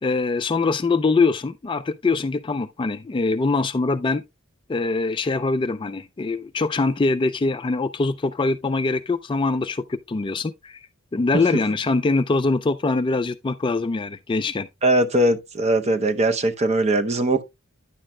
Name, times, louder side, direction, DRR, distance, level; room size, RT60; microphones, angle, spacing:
voice 1, 0.0-4.2 4.7-10.8 11.1-14.7, left 3 dB, 20° left, 0.3 m, -23 dB
voice 2, 14.8-17.4, right 1 dB, 30° right, 0.7 m, -20 dB
9.8 x 7.5 x 2.2 m
head